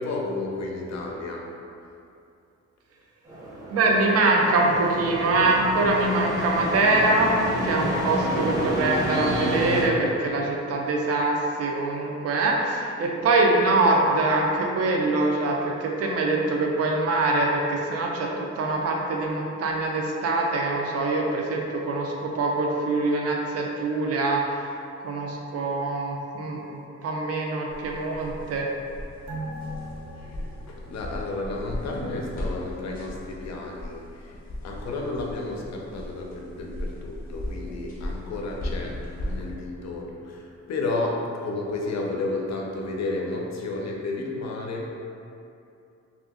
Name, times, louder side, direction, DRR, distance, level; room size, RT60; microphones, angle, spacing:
voice 1, 0.0-1.5 8.5-8.8 30.2-30.4 30.7-34.3 34.6-39.0 39.2-44.9, left 2 dB, 65° left, 0 dB, 0.5 m, -32 dB
sound 1, 3.3-9.8, equal, 10° right, 0.6 m, -30 dB
voice 2, 3.7-7.3 7.6-18.3 18.6-24.4 25.0-28.7, right 2 dB, 55° right, 0 dB, 0.4 m, -24 dB
sound 2, 27.7-39.5, left 1 dB, 30° left, 0.7 m, -37 dB
sound 3, 29.3-32.2 32.5-32.6, equal, 75° right, 0.8 m, -39 dB
2.7 x 2.4 x 3.6 m, 2.6 s
wide cardioid pair, 160°, 29 cm